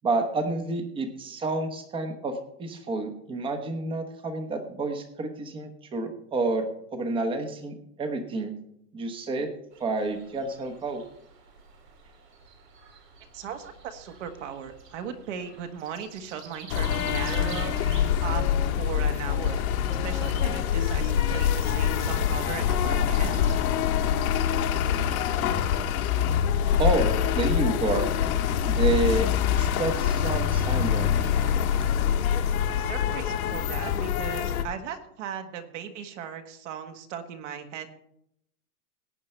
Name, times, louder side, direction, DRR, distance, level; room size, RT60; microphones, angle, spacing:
voice 1, 0.0-8.5 8.9-9.5 9.8-11.0 26.8-28.1 28.7-29.3 29.6-31.1, right 3 dB, 10° right, 7 dB, 1.0 m, -29 dB
sound 1, 9.7-23.6, right 5 dB, 85° right, 3.9 m, -49 dB
voice 2, 13.3-17.7 18.2-18.4 18.7-19.6 20.0-23.3 32.7-37.9, right 8 dB, 50° right, 6 dB, 1.6 m, -37 dB
sound 2, 16.7-34.6, left 9 dB, 65° left, 1.7 m, -25 dB
sound 3, 18.1-18.7 19.3-22.2 22.8-25.9 26.4-29.2, left 11 dB, 30° left, 0.5 m, -39 dB
18.0 x 8.8 x 3.3 m, 0.74 s
supercardioid pair, 160°, 47 cm